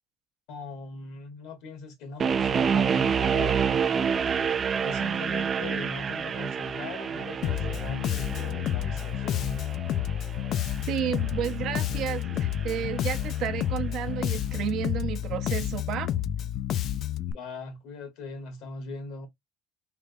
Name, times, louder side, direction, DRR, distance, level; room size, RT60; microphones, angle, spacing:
voice 1, 0.5-4.2 4.8-9.6 17.3-19.3, left 4 dB, 80° left, 1.4 m, -40 dB
sound 1, 2.2-13.2, right 7 dB, 35° right, 0.3 m, -29 dB
Bass guitar, 7.4-17.3, left 11 dB, 55° left, 0.3 m, -30 dB
voice 2, 10.9-16.1, right 10 dB, 60° right, 0.7 m, -32 dB
3.5 x 3.1 x 2.7 m
cardioid pair, 130°, 0 cm